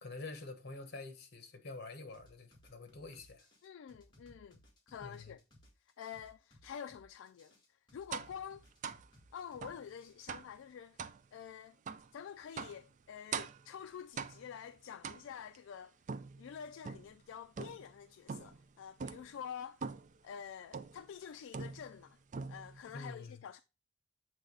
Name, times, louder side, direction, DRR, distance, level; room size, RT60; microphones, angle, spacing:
voice 1, 0.0-3.5 5.0-5.4 22.9-23.4, left 3 dB, 55° left, 1.1 m, -47 dB
sound 1, 2.1-10.1, equal, 25° left, 2.0 m, -63 dB
voice 2, 3.6-4.6 4.9-5.4 5.8-8.6 9.3-11.0 11.3-11.8 12.1-16.0 16.4-19.9 20.2-22.2 22.5-23.6, left 8 dB, 70° left, 0.3 m, -48 dB
sound 2, 8.1-8.4 8.8-9.1 9.6-9.8 10.3-10.6 11.0-11.2 11.9-12.1 12.6-12.8 13.3-13.7 14.2-14.6 15.0-15.6 16.1-17.2 17.6-18.0 18.3-18.6 19.0-19.3 19.8-20.2 20.7-21.1 21.5-22.0 22.3-22.8, right 5 dB, 40° right, 0.4 m, -43 dB
7.9 x 3.2 x 3.9 m
head